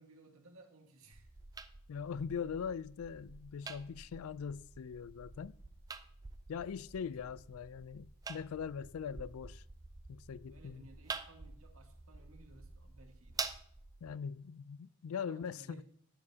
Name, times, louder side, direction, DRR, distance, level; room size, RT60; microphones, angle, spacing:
voice 1, 0.0-1.3 6.9-7.1 10.4-13.6 15.2-15.8, right 2 dB, 75° right, 1.7 m, -59 dB
sound 1, 1.1-14.1, right 4 dB, 15° right, 0.3 m, -48 dB
voice 2, 1.9-5.6 6.5-9.6 10.1-10.8 14.0-15.8, left 6 dB, 80° left, 0.4 m, -41 dB
11.5 x 9.6 x 2.8 m
head